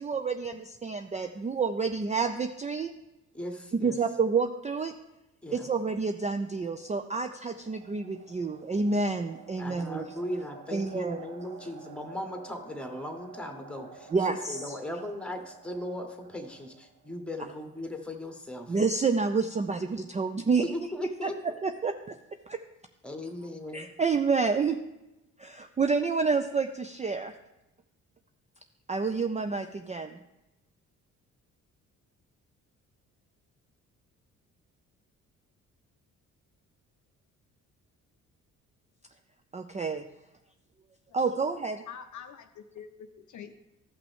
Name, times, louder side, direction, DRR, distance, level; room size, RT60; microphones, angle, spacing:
voice 1, 0.0-2.9 3.7-4.9 5.5-10.1 10.7-11.2 14.1-14.8 18.7-20.7 21.2-21.3 21.6-22.2 22.5-22.6 23.7-24.8 25.4-27.3 28.9-30.2 39.5-40.0 41.1-41.8, right 4 dB, 20° right, 6 dB, 0.5 m, -29 dB
voice 2, 3.3-4.0 5.4-5.7 9.6-18.7 20.6-21.3 23.0-23.9, left 1 dB, 5° left, 5 dB, 1.4 m, -38 dB
sound 1, 6.5-17.3, right 5 dB, 55° right, 1.1 m, -51 dB
voice 3, 41.9-43.6, left 8 dB, 45° left, 8 dB, 0.6 m, -45 dB
13.5 x 5.9 x 3.5 m, 0.95 s
hypercardioid pair, 45°, 41 cm